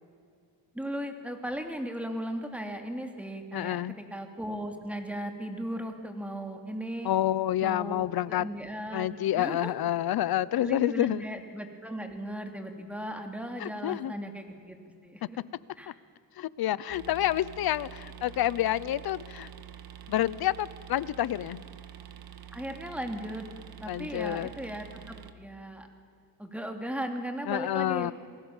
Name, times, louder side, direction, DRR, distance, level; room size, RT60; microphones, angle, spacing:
voice 1, 0.7-7.1 7.6-9.7 10.6-14.8 15.0-15.4 15.8-15.9 22.5-23.5 23.8-25.9 26.4-28.1, equal, 5° right, 5 dB, 2.8 m, -37 dB
voice 2, 3.5-3.9 7.0-8.5 8.9-11.2 13.6-14.1 15.9-16.0 16.4-19.5 20.1-21.6 23.9-24.5 27.5-28.1, left 13 dB, 80° left, 19 dB, 0.8 m, -28 dB
sound 1, 16.9-25.3, right 9 dB, 75° right, 1.6 m, -47 dB
28.5 x 20.0 x 7.3 m, 2.5 s
cardioid pair, 120°, 37 cm